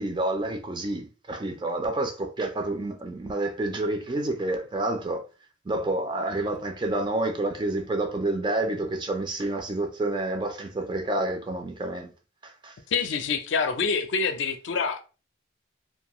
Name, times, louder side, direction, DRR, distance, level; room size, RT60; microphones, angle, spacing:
voice 1, 0.0-5.2 5.7-12.1 12.4-12.7, right 2 dB, 25° right, 0.4 m, -29 dB
voice 2, 12.9-15.0, left 5 dB, 70° left, 0.4 m, -26 dB
2.6 x 2.2 x 2.9 m
head